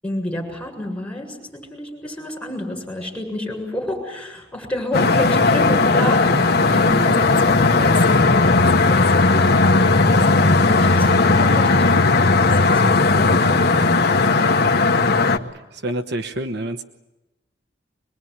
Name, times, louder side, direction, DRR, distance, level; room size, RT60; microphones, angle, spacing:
voice 1, 0.0-9.6 10.2-14.7, left 1 dB, 5° left, -1 dB, 7.5 m, -30 dB
sound 1, 4.9-15.4, left 3 dB, 55° left, 1.4 m, -16 dB
voice 2, 15.5-16.8, right 1 dB, 55° right, 6 dB, 1.1 m, -28 dB
24.0 x 21.5 x 9.6 m, 0.98 s
head